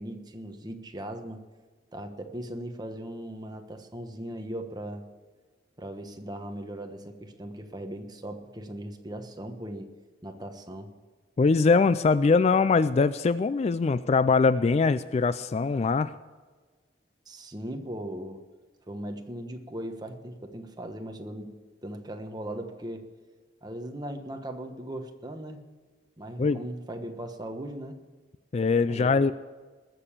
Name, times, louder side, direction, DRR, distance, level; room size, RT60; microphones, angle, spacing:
voice 1, 0.0-1.4 1.9-5.0 5.8-9.9 10.2-10.9 17.3-18.4 18.9-21.5 21.8-23.1 23.6-25.6 26.2-28.0 28.9-29.3, right 1 dB, 20° right, 5 dB, 1.2 m, -38 dB
voice 2, 11.4-16.1 26.4-26.6 28.5-29.3, left 4 dB, 35° left, 15 dB, 0.3 m, -22 dB
20.5 x 6.8 x 7.3 m, 1.4 s
head